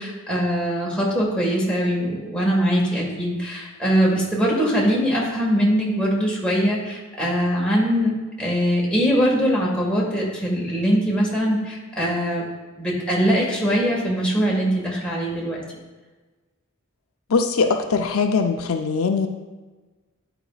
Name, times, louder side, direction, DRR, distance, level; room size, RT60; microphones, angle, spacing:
voice 1, 0.0-12.4 12.8-15.6, equal, 5° left, -5 dB, 1.6 m, -22 dB
voice 2, 17.3-19.3, left 4 dB, 85° left, 5 dB, 0.5 m, -21 dB
9.7 x 5.0 x 2.4 m, 1.2 s
head